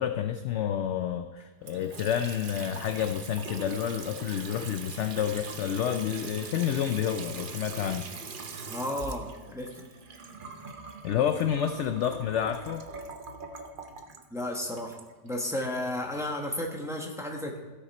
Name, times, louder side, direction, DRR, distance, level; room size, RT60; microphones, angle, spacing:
voice 1, 0.0-8.1 11.0-12.8, left 9 dB, 75° left, 8 dB, 0.6 m, -29 dB
Water tap faucet / Sink (filling or washing) / Trickle dribble, 1.6-15.7, right 4 dB, 50° right, 0.6 m, -42 dB
voice 2, 8.7-9.8 14.3-15.0 15.2-17.6, left 1 dB, ahead, 1 dB, 1.0 m, -33 dB
15.5 x 6.6 x 4.2 m, 1.3 s
omnidirectional pair, 1.7 m